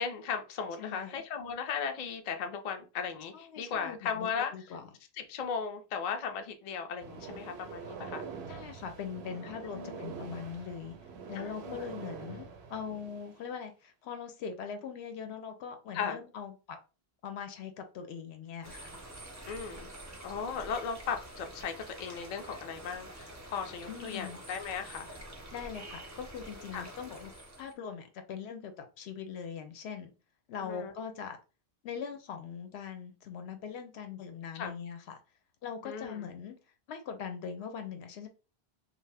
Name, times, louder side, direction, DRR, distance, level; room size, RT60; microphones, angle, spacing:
voice 1, 0.0-4.5 5.2-8.3 9.7-10.0 11.4-11.8 15.9-16.2 19.5-19.9 20.2-25.1 26.7-26.9 30.6-30.9 34.5-34.7 35.8-36.3, left 6 dB, 55° left, 0.5 m, -37 dB
voice 2, 0.8-1.2 3.3-4.8 8.5-11.0 11.3-16.8 17.2-18.9 23.9-24.4 25.5-27.3 27.6-30.1 30.5-31.4 31.8-35.2 35.6-36.6 36.9-38.3, left 7 dB, 90° left, 0.9 m, -41 dB
sound 1, 7.0-13.4, right 6 dB, 90° right, 0.8 m, -45 dB
sound 2, 18.6-27.7, right 1 dB, 25° right, 0.4 m, -47 dB
2.6 x 2.1 x 3.3 m
omnidirectional pair, 1.1 m